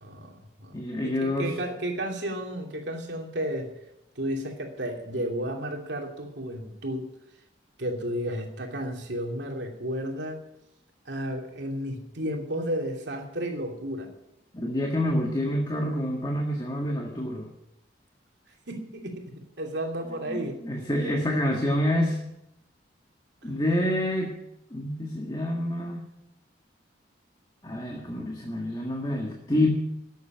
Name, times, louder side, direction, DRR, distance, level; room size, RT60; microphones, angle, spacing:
voice 1, 0.0-0.8 1.0-3.7 4.2-7.1 7.8-10.4 11.0-14.1 18.7-19.2 19.6-20.6 23.4-23.5, equal, 70° right, 2 dB, 2.8 m, -32 dB
voice 2, 0.7-1.5 14.5-17.5 20.3-22.2 23.4-24.4 24.7-26.0 27.6-29.7, left 1 dB, 20° left, 1 dB, 1.7 m, -27 dB
13.0 x 8.4 x 9.2 m, 0.81 s
head